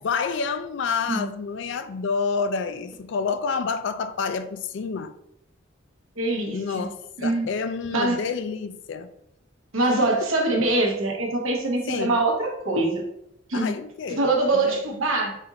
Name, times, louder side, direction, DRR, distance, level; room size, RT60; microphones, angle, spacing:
voice 1, 0.0-5.1 6.5-9.1 10.0-10.3 11.9-12.2 13.5-14.2 14.5-14.8, left 5 dB, 60° left, 0.3 m, -28 dB
voice 2, 6.2-6.9 7.2-7.5 7.9-8.2 9.7-13.0 13.5-13.7 14.2-15.3, right 2 dB, 80° right, 1.0 m, -23 dB
4.2 x 2.5 x 4.0 m
head